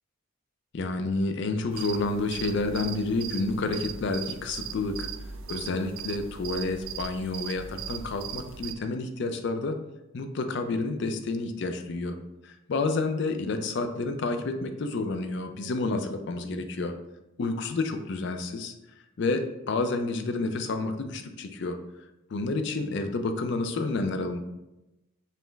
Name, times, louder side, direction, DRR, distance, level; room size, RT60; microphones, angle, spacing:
voice 1, 0.7-5.1 5.5-9.8 10.1-12.2 12.4-16.9 17.4-18.7 19.2-21.8 22.3-24.4, left 3 dB, 55° left, 7 dB, 0.4 m, -29 dB
sound 1, 1.7-8.7, right 8 dB, 65° right, 0.3 m, -39 dB
5.4 x 2.0 x 3.2 m, 0.97 s
head